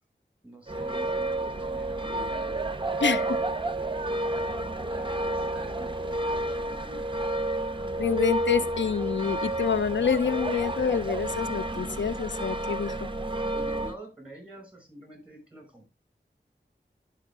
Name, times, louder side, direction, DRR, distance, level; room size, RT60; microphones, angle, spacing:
voice 1, 0.4-2.6 3.0-3.2 4.3-6.6 13.5-15.9, right 2 dB, 5° right, 5.8 m, -47 dB
sound 1, 0.7-14.0, right 1 dB, 25° right, 0.7 m, -30 dB
voice 2, 3.0-3.4 8.0-12.9, left 6 dB, 85° left, 0.5 m, -27 dB
11.5 x 5.6 x 3.6 m
wide cardioid pair, 50°, 19 cm